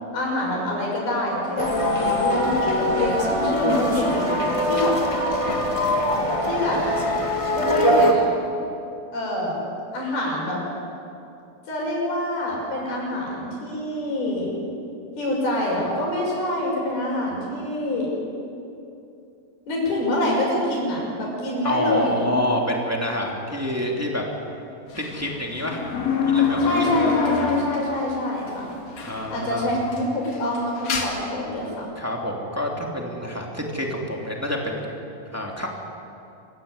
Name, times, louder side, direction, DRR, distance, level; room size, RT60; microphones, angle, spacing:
voice 1, 0.1-4.3 4.6-4.9 6.4-6.8 7.5-8.2 9.1-9.6 9.9-10.6 11.7-14.5 15.2-18.1 19.7-22.3 26.6-28.7 29.3-31.8, left 1 dB, 75° left, -3 dB, 8.0 m, -26 dB
sound 1, 1.6-8.1, equal, 20° left, 0.9 m, -22 dB
voice 2, 21.6-24.2 24.9-25.8 26.3-26.9 29.0-29.7 32.0-35.0 35.3-35.7, equal, 5° right, -1 dB, 2.2 m, -27 dB
sound 2, 25.0-28.2 28.5-28.6 29.0-29.5 29.8-31.1, left 5 dB, 50° left, 3.1 m, -24 dB
25.5 x 15.5 x 9.8 m, 2.7 s
omnidirectional pair, 4.4 m